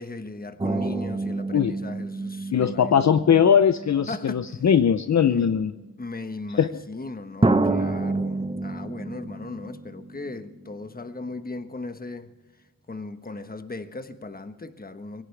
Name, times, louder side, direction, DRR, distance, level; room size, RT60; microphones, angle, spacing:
voice 1, 0.0-2.9 4.1-4.4 5.2-5.5 6.0-12.3 12.9-15.2, left 3 dB, 25° left, 1.2 m, -37 dB
sound 1, 0.6-4.5 5.4-5.5 7.4-10.7 11.0-11.1, right 2 dB, 15° right, 0.9 m, -28 dB
voice 2, 2.5-5.7 6.6-6.7, left 8 dB, 55° left, 0.7 m, -20 dB
21.5 x 17.5 x 3.4 m
wide cardioid pair, 105°, 34 cm